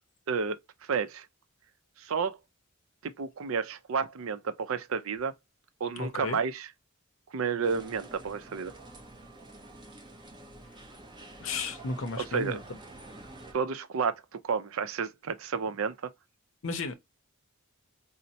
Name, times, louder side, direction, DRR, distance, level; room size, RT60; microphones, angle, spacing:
voice 1, 0.8-1.3 2.0-2.4 3.0-5.3 5.8-6.7 7.3-8.7 12.2-12.6 13.5-14.1 14.5-16.0, right 5 dB, 75° right, 0.5 m, -31 dB
voice 2, 6.0-6.4 11.4-12.6 16.6-16.9, left 3 dB, 65° left, 0.6 m, -34 dB
sound 1, 7.6-13.5, right 2 dB, 20° right, 0.8 m, -48 dB
4.1 x 2.1 x 2.7 m
head